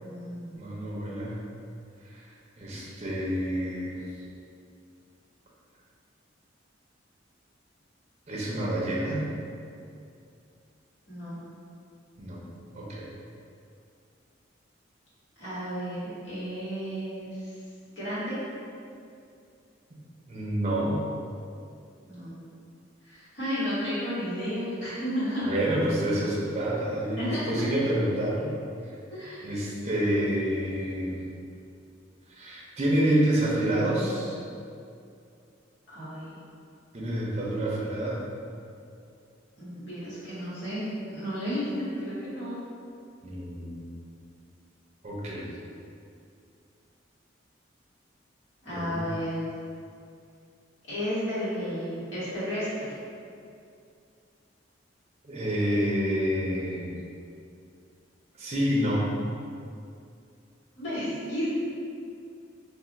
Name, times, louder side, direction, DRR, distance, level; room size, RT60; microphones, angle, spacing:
voice 1, 0.0-0.6 11.1-11.4 15.4-17.6 17.9-18.4 22.1-22.3 23.0-25.6 26.0-26.3 27.2-27.4 29.1-29.5 35.9-36.4 39.5-40.8 41.1-42.6 48.6-49.5 50.9-52.9 60.7-61.5, equal, 75° left, -12 dB, 1.4 m, -33 dB
voice 2, 0.5-1.4 2.1-2.2 2.6-4.0 8.3-9.2 12.2-12.4 12.7-13.1 20.3-21.0 25.4-28.5 29.4-31.2 32.3-34.3 36.9-38.2 43.2-43.9 45.0-45.5 48.7-49.0 55.2-56.9 58.4-59.0, right 1 dB, 35° right, -5 dB, 0.5 m, -28 dB
2.4 x 2.4 x 3.9 m, 2.5 s
head